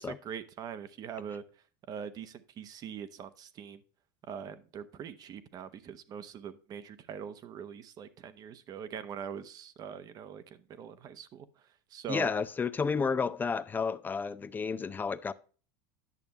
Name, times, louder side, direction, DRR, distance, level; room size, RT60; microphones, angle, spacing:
voice 1, 0.0-1.4 1.9-3.8 4.3-11.5 11.9-12.3, right 7 dB, 40° right, 1.0 m, -42 dB
voice 2, 12.1-15.3, left 5 dB, 20° left, 0.5 m, -31 dB
11.0 x 6.7 x 3.0 m
supercardioid pair, 120°, 10 cm